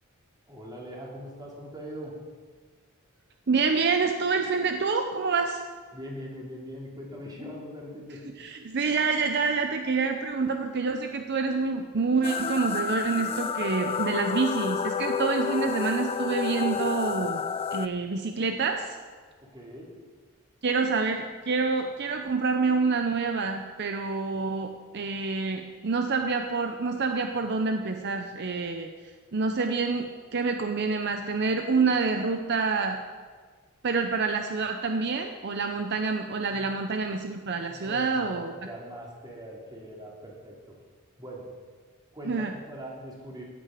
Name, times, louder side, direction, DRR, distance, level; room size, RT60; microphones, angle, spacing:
voice 1, 0.5-2.2 5.9-8.3 19.4-19.9 36.5-36.7 37.7-40.8 41.2-41.5 42.1-43.4, equal, 20° right, -3 dB, 2.8 m, -41 dB
voice 2, 3.5-5.6 8.4-17.4 17.7-19.0 20.6-28.9 29.3-33.0 33.8-38.5 42.3-42.5, right 4 dB, 55° right, 5 dB, 0.7 m, -27 dB
sound 1, 12.2-17.9, left 6 dB, 25° left, 0.3 m, -30 dB
15.0 x 8.7 x 5.0 m, 1.5 s
head